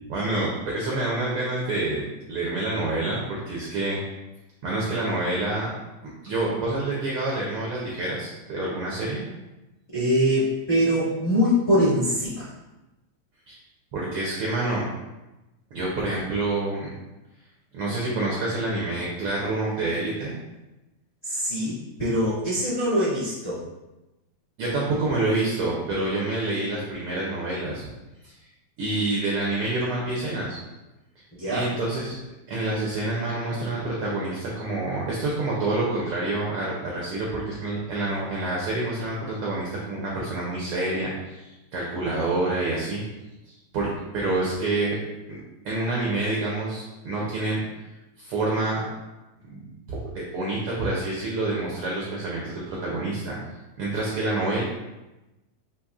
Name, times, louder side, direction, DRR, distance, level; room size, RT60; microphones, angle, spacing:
voice 1, 0.1-4.0 4.6-5.7 6.2-9.2 13.5-13.6 13.9-14.8 15.7-16.9 17.7-20.4 24.6-27.9 28.2-28.3 28.8-30.6 31.5-32.2 32.5-43.0 43.5-43.9 44.1-45.0 45.3-45.4 45.6-47.6 48.2-48.8 49.5-49.6 49.9-53.4 53.8-54.6, right 2 dB, 75° right, -4 dB, 1.3 m, -27 dB
voice 2, 9.9-12.5 21.2-23.6 31.4-31.7, equal, 35° left, -12 dB, 1.1 m, -23 dB
6.7 x 2.9 x 2.4 m, 1.0 s
omnidirectional pair, 3.3 m